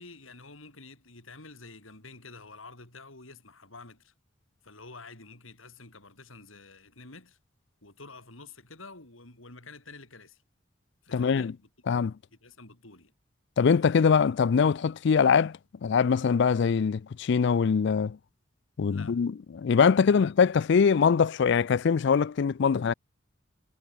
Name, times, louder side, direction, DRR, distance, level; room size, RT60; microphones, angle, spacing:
voice 1, 0.0-4.1 4.6-7.4 7.8-10.4 11.0-11.7 12.3-13.1 18.9-19.2 20.0-20.3, left 3 dB, 90° left, 5.5 m, -49 dB
voice 2, 11.1-11.5 11.9-12.1 13.6-18.2 18.8-22.9, left 6 dB, 60° left, 0.4 m, -23 dB
head